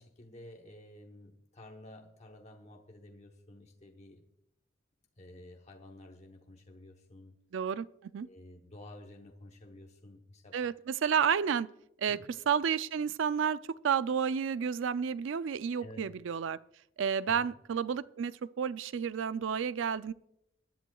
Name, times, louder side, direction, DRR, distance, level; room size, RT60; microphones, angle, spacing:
voice 1, 0.0-4.3 5.2-7.3 8.2-10.6 12.1-12.2 15.8-16.1 17.3-17.5, left 1 dB, 35° left, 1.0 m, -52 dB
voice 2, 7.5-8.3 10.5-11.7 12.0-12.2 12.5-16.6 17.0-20.1, right 7 dB, 75° right, 0.4 m, -31 dB
23.0 x 11.0 x 2.3 m
head